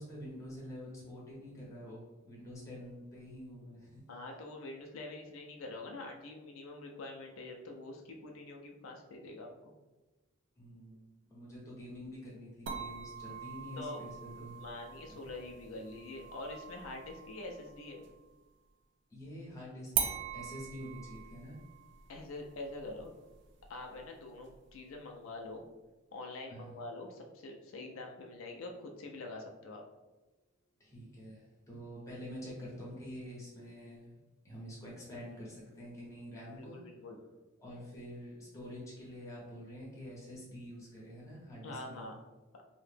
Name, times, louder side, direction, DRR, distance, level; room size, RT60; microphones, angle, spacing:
voice 1, 0.0-4.0 10.6-14.6 15.1-15.2 19.1-21.6 26.5-26.8 30.8-34.2 34.4-36.8 37.6-42.1, equal, 15° left, -5 dB, 0.8 m, -47 dB
voice 2, 4.1-9.5 13.8-14.0 14.6-18.0 22.1-23.1 23.7-25.6 26.1-29.8 36.5-37.2 41.6-42.1, left 2 dB, 80° left, 1 dB, 0.4 m, -45 dB
sound 1, 12.7-18.2 19.9-24.9, right 7 dB, 60° right, 0.3 m, -42 dB
2.7 x 2.1 x 3.2 m, 1.1 s
head